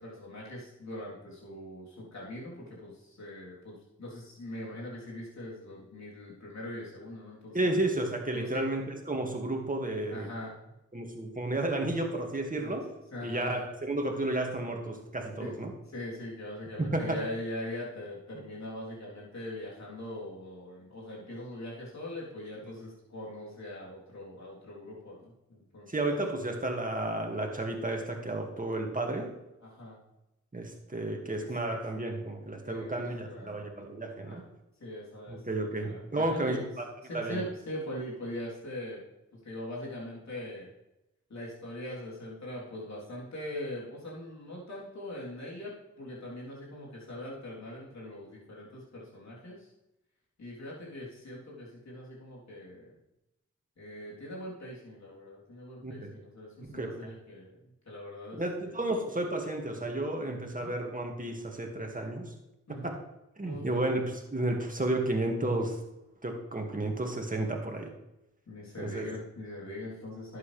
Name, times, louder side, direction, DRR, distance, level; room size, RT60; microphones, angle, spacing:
voice 1, 0.0-7.7 8.3-8.7 10.1-10.7 12.6-12.8 13.1-13.5 15.4-15.5 15.9-26.1 29.6-30.0 31.4-31.5 32.6-33.7 34.2-34.4 34.8-36.6 37.0-39.0 39.3-40.7 41.3-49.7 50.4-53.0 53.8-57.6 57.9-58.8 60.4-60.7 62.7-62.9 63.4-63.8 68.5-70.4, left 1 dB, 65° left, -5 dB, 3.6 m, -41 dB
voice 2, 7.5-10.3 10.9-12.9 13.2-15.7 16.8-17.2 25.9-29.3 30.5-34.4 35.3-36.8 37.1-37.4 55.8-56.1 56.7-56.9 58.4-62.3 62.8-63.0 63.4-65.8 66.2-67.9 68.8-69.1, right 2 dB, 30° right, 2 dB, 2.1 m, -32 dB
11.5 x 8.4 x 3.4 m, 0.93 s
cardioid pair, 45°, 29 cm